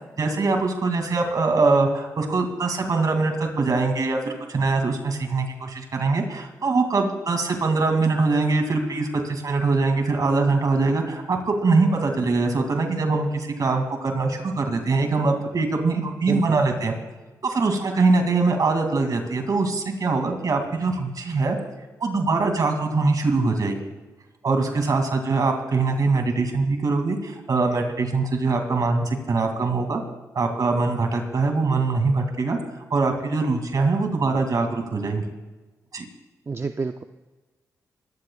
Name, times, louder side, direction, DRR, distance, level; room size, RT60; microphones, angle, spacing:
voice 1, 0.2-16.9 17.4-21.6 22.0-23.8 24.4-30.0 30.3-32.6 32.9-35.2 35.9-36.0, right 3 dB, 60° right, 4 dB, 2.6 m, -23 dB
voice 2, 16.3-16.6 36.5-37.0, right 4 dB, 40° right, 7 dB, 0.5 m, -28 dB
21.5 x 14.5 x 2.4 m, 1.2 s
cardioid pair, 60°, 7 cm